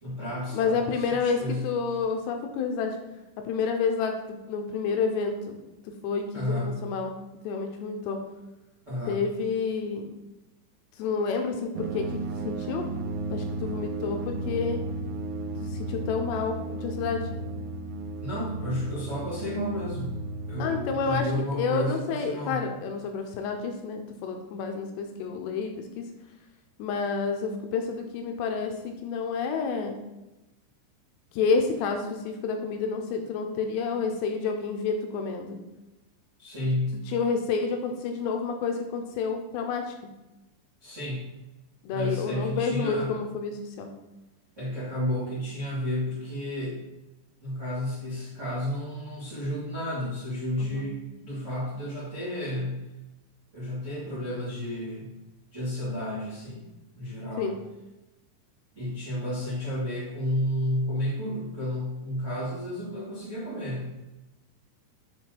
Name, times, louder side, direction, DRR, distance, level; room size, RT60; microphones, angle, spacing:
voice 1, 0.0-1.6 6.3-6.8 8.8-9.2 18.2-20.1 20.5-22.6 36.4-37.0 40.8-41.2 41.9-43.1 44.6-46.8 47.4-52.8 53.5-55.1 55.5-56.6 56.9-57.5 58.7-63.9, left 1 dB, 60° right, -10 dB, 0.7 m, -31 dB
voice 2, 0.5-3.0 3.4-5.6 5.8-7.2 7.4-8.2 9.1-10.1 11.0-12.9 13.3-14.8 15.6-17.3 20.6-26.1 26.8-30.0 31.3-35.6 37.1-39.9 41.8-43.9 50.6-50.9 57.4-57.6, left 5 dB, 80° left, 5 dB, 2.6 m, -29 dB
sound 1, 11.8-21.2, right 2 dB, 80° right, 2.5 m, -34 dB
6.7 x 4.7 x 4.4 m, 1.0 s
omnidirectional pair, 5.3 m